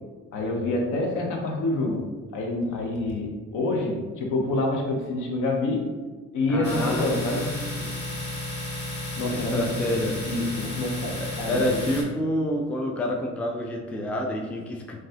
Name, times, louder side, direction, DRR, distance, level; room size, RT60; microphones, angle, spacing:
voice 1, 0.3-2.1 2.3-5.9 6.3-7.4 9.2-9.6 9.9-10.0 10.2-11.8, left 2 dB, 85° left, 1 dB, 0.7 m, -27 dB
voice 2, 6.5-8.1 9.3-10.3 11.2-15.0, left 1 dB, 5° left, 1 dB, 0.3 m, -28 dB
Domestic sounds home sounds, 6.6-12.0, left 2 dB, 35° left, 1.3 m, -33 dB
3.1 x 2.3 x 2.7 m, 1.4 s
cardioid pair, 90°, 30 cm